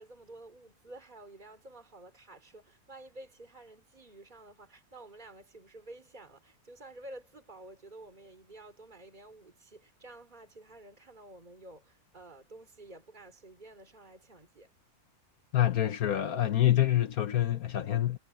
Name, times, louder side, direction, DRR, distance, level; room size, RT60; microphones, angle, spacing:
voice 1, 0.0-14.7, right 2 dB, 30° right, 3.5 m, -51 dB
voice 2, 15.5-18.2, left 12 dB, 75° left, 1.5 m, -26 dB
omnidirectional pair, 1.5 m